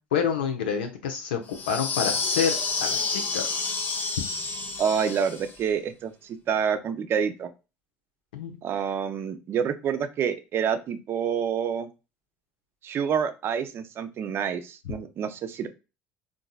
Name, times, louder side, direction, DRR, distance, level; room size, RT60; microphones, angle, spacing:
voice 1, 0.1-3.8 8.3-8.6, left 7 dB, 85° left, 5 dB, 0.7 m, -28 dB
sound 1, 1.5-5.6, left 4 dB, 35° left, 0.7 m, -29 dB
voice 2, 4.8-7.5 8.6-11.9 12.8-15.7, right 7 dB, 50° right, 10 dB, 0.5 m, -28 dB
3.9 x 2.6 x 2.3 m, 0.30 s
hypercardioid pair, 75°, 5 cm